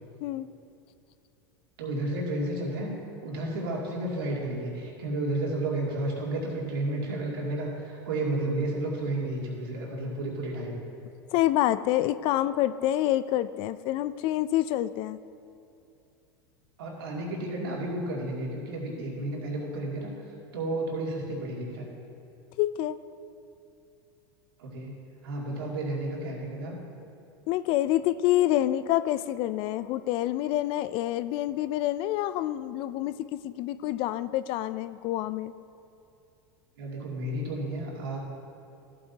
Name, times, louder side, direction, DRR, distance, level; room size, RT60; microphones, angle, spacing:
voice 1, 1.8-2.9 3.2-10.8 16.8-20.1 20.5-21.9 24.6-24.9 25.2-26.7 36.8-38.2, right 1 dB, 75° right, -3 dB, 2.4 m, -32 dB
voice 2, 11.3-15.2 22.6-23.0 27.5-35.5, left 14 dB, 50° left, 15 dB, 0.3 m, -27 dB
14.0 x 8.6 x 2.8 m, 2.7 s
hypercardioid pair, 100°, 12 cm